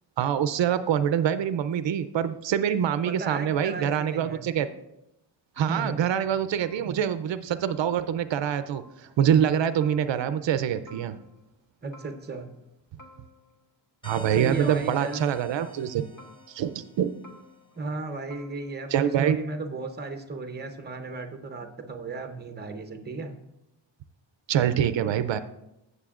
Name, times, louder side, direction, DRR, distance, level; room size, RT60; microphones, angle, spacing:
voice 1, 0.2-4.7 5.6-11.2 14.0-16.1 16.5-17.2 18.9-19.4 24.5-25.4, right 9 dB, 80° right, 12 dB, 0.5 m, -25 dB
voice 2, 3.1-4.5 5.7-6.0 11.8-12.6 14.3-15.2 17.8-23.3, right 3 dB, 25° right, 6 dB, 0.7 m, -35 dB
sound 1, 6.6-7.2 7.7-8.5 8.7-9.3 9.8-10.6 10.9-11.6 11.9-12.7 13.0-13.7 14.1-14.8 15.1-15.9 16.2-16.9 17.2-18.0 18.3-19.0, left 1 dB, 50° left, 1.1 m, -54 dB
sound 2, 14.0-17.4, equal, 10° left, 0.5 m, -48 dB
15.5 x 6.7 x 2.4 m, 0.87 s
wide cardioid pair, 180°, 44 cm